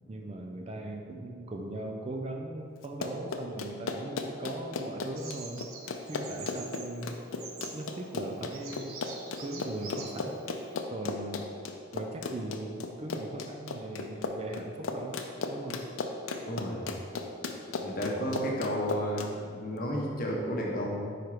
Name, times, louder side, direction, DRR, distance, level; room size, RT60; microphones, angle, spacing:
voice 1, 0.1-5.7 6.1-7.2 7.7-9.0 9.4-10.5 10.9-11.5 11.9-15.2 15.5-15.9 18.1-18.5, right 2 dB, 30° right, 2 dB, 0.3 m, -39 dB
Run, 2.8-19.3, left 4 dB, 80° left, 0.5 m, -36 dB
Bird vocalization bird call bird song, 5.2-10.8, right 5 dB, 90° right, 0.7 m, -47 dB
voice 2, 16.4-16.9 17.8-21.2, equal, 45° left, -2 dB, 0.9 m, -32 dB
5.0 x 4.4 x 4.8 m, 2.1 s
head